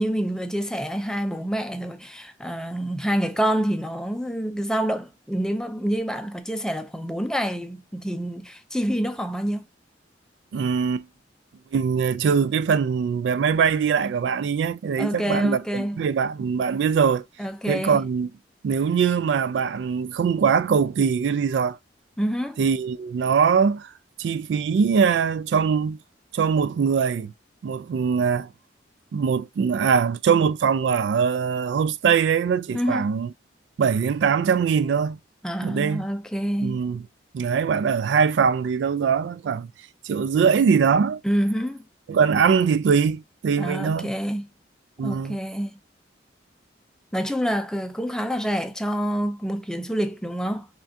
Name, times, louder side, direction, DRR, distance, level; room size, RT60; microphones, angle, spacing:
voice 1, 0.0-9.6 15.0-16.0 17.4-18.0 22.2-22.6 32.7-33.1 35.4-36.8 41.2-41.9 43.6-44.5 45.0-45.7 47.1-50.7, equal, 5° left, 0.4 m, -27 dB
voice 2, 10.5-11.1 11.7-17.3 17.7-18.3 18.6-21.8 22.6-23.9 24.2-26.0 26.3-27.3 27.6-28.5 29.1-33.3 33.8-35.2 35.6-36.0 36.6-37.0 37.3-39.7 40.0-41.2 42.1-44.1 45.0-45.4, right 6 dB, 75° right, 0.3 m, -22 dB
5.8 x 2.3 x 2.6 m
head